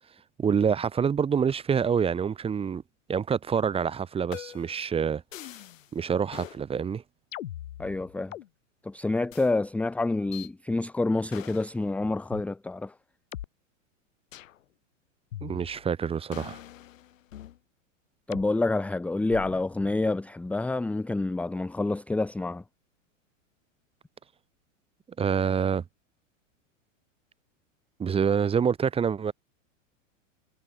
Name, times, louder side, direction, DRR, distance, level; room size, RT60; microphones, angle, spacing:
voice 1, 0.4-2.8 3.1-5.2 5.9-7.0 15.4-16.6 25.2-25.8 28.0-29.3, right 7 dB, 15° right, 1.4 m, -26 dB
sound 1, 4.3-4.8 5.3-5.9 6.3-6.6 7.3-8.5 9.3-9.5 10.3-10.5 11.3-11.7 12.3-12.4 13.3-13.5 14.3-14.6 15.3-15.9 16.3-17.6 18.3-18.5 19.3-19.7, left 12 dB, 85° left, 2.4 m, -42 dB
voice 2, 7.8-8.3 8.8-12.9 18.3-22.6, left 2 dB, 5° left, 0.8 m, -28 dB
supercardioid pair, 140°, 39 cm